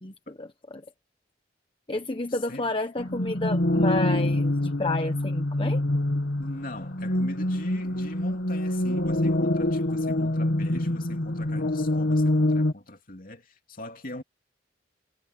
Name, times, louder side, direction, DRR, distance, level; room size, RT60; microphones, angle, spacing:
voice 1, 0.4-0.8 1.9-5.8, left 2 dB, 30° left, 1.1 m, -30 dB
voice 2, 2.3-2.7 6.4-14.2, left 1 dB, 50° left, 2.9 m, -41 dB
sound 1, 3.0-12.7, left 1 dB, 75° left, 1.8 m, -25 dB
head